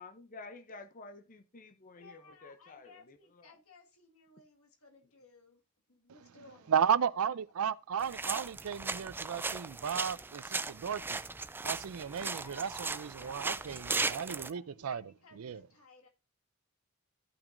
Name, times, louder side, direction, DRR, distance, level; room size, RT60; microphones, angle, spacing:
voice 1, 0.0-3.6 8.2-8.3, left 3 dB, 40° left, 0.7 m, -51 dB
voice 2, 2.0-5.6 5.9-6.7 12.4-16.1, left 4 dB, 80° left, 2.0 m, -59 dB
voice 3, 6.7-11.2 11.6-15.0 15.4-15.6, right 7 dB, 80° right, 0.5 m, -34 dB
sound 1, 8.0-14.5, right 3 dB, 10° right, 0.3 m, -37 dB
14.0 x 5.9 x 2.6 m
head